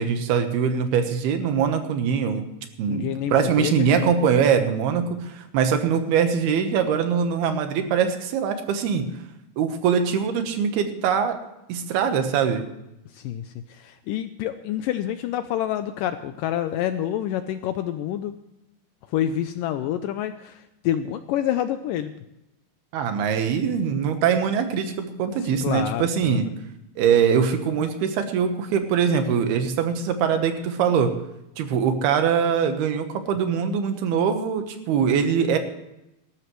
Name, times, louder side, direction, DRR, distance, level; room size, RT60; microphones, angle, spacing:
voice 1, 0.0-2.4 2.8-9.1 9.6-11.4 11.7-12.7 22.9-26.5 27.0-31.1 31.6-35.6, right 7 dB, 85° right, 7 dB, 3.2 m, -22 dB
voice 2, 2.9-4.1 13.1-18.3 19.1-22.1 25.6-26.4, left 11 dB, 85° left, 10 dB, 2.0 m, -28 dB
18.5 x 13.5 x 3.2 m, 0.89 s
omnidirectional pair, 4.4 m